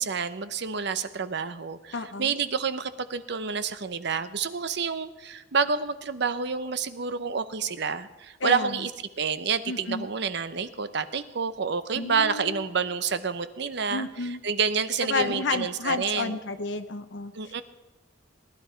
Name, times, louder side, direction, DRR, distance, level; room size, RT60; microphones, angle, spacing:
voice 1, 0.0-8.9 9.2-16.4 17.3-17.6, right 5 dB, 65° right, 12 dB, 0.8 m, -29 dB
voice 2, 1.9-2.4 8.4-8.8 9.7-10.1 11.9-12.7 13.9-14.4 15.1-17.6, left 3 dB, 75° left, 8 dB, 0.8 m, -31 dB
18.5 x 11.0 x 4.5 m, 1.1 s
head